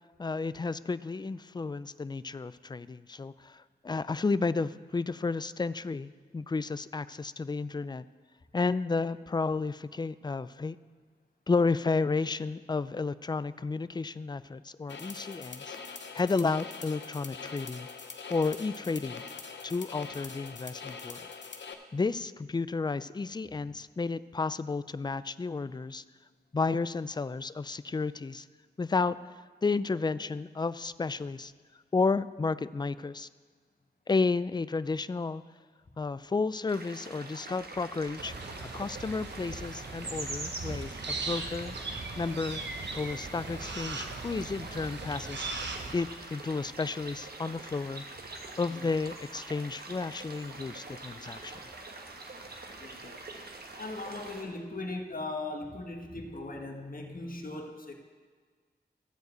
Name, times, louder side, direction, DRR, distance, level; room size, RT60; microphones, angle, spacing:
voice 1, 0.2-8.0 8.5-10.8 11.5-15.8 16.1-17.9 18.3-19.2 19.6-21.3 21.9-26.0 26.5-28.5 28.8-29.2 29.6-31.5 31.9-33.3 34.1-35.4 36.0-38.3 38.7-41.8 42.2-42.6 43.0-45.5 45.9-48.0 48.6-51.6, left 4 dB, 25° left, 16 dB, 0.4 m, -32 dB
sound 1, 14.9-21.7, left 5 dB, 85° left, 0.8 m, -43 dB
sound 2, 36.7-54.4, right 2 dB, 60° right, 1.2 m, -44 dB
sound 3, 38.2-45.9, right 3 dB, 85° right, 1.1 m, -39 dB
voice 2, 52.8-53.2 53.8-57.9, left 2 dB, 50° left, 2 dB, 1.5 m, -39 dB
13.5 x 4.7 x 7.9 m, 1.6 s
cardioid pair, 50°, 18 cm